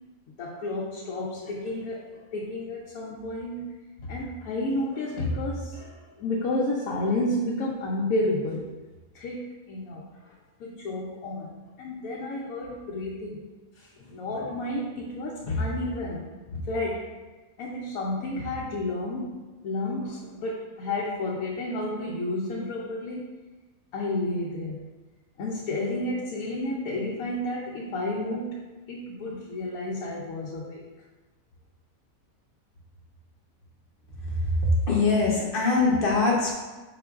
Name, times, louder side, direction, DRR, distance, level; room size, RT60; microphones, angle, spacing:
voice 1, 0.4-3.7 4.0-8.6 9.1-10.3 10.6-13.4 13.8-17.0 17.6-23.2 23.9-24.8 25.4-28.6 28.9-30.8, left 1 dB, 90° left, -4 dB, 1.0 m, -31 dB
voice 2, 34.9-36.5, left 4 dB, 50° left, -4 dB, 0.8 m, -22 dB
4.9 x 3.7 x 2.3 m, 1.2 s
omnidirectional pair, 1.4 m